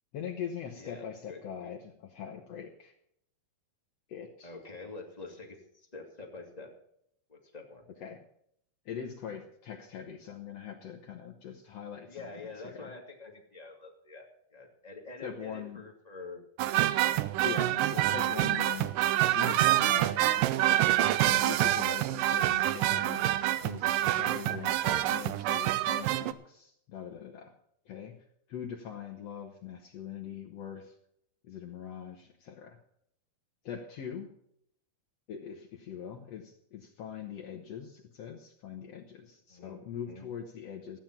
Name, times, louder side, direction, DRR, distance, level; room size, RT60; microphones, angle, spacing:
voice 1, 0.1-2.9 4.1-4.5 8.0-8.2 8.8-12.2 12.6-12.9 15.2-15.8 17.4-18.9 19.2-20.6 21.3-23.3 23.6-27.5 27.8-28.2 28.5-30.9 31.4-32.8 33.6-34.4 35.3-41.0, left 8 dB, 85° left, 2 dB, 1.4 m, -42 dB
voice 2, 0.7-1.7 2.2-2.3 4.4-6.7 7.3-7.8 12.1-16.4 18.0-18.3 39.5-39.7 40.1-40.3, left 3 dB, 25° left, 1 dB, 0.8 m, -47 dB
sound 1, 16.6-26.3, right 14 dB, 90° right, 1.9 m, -27 dB
15.0 x 9.0 x 5.9 m, 0.73 s
omnidirectional pair, 4.5 m